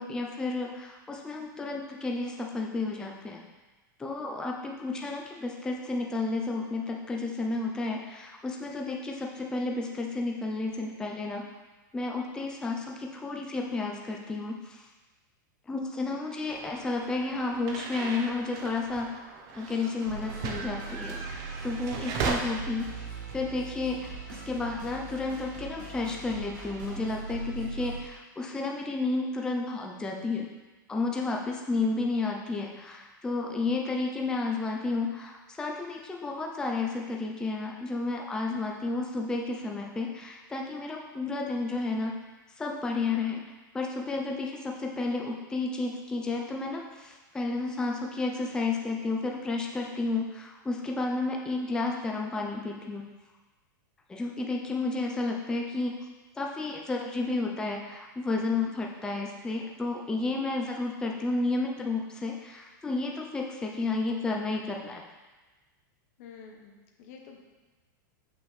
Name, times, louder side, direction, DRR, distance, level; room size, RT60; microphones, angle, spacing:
voice 1, 0.0-3.4 4.0-11.5 11.9-14.8 15.7-19.2 19.5-23.1 23.3-30.5 30.9-42.2 42.6-43.4 43.7-53.0 54.1-56.0 56.4-65.0, left 3 dB, 5° left, 0 dB, 0.5 m, -32 dB
sound 1, 16.5-22.4, right 5 dB, 35° right, 0.8 m, -37 dB
sound 2, 20.0-28.0, right 4 dB, 90° right, 2.4 m, -40 dB
voice 2, 66.2-67.4, left 6 dB, 50° left, 1 dB, 1.0 m, -49 dB
7.4 x 6.0 x 3.2 m, 1.2 s
supercardioid pair, 155°, 11 cm